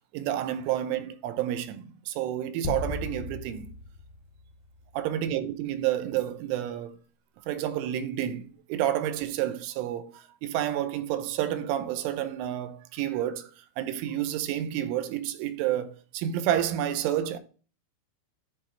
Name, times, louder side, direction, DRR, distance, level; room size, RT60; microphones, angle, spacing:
voice 1, 0.1-3.8 4.9-7.0 7.5-17.4, right 11 dB, 80° right, 3.1 m, -30 dB
sound 1, 2.6-5.2, left 3 dB, 80° left, 1.8 m, -37 dB
10.0 x 4.0 x 4.5 m
omnidirectional pair, 5.9 m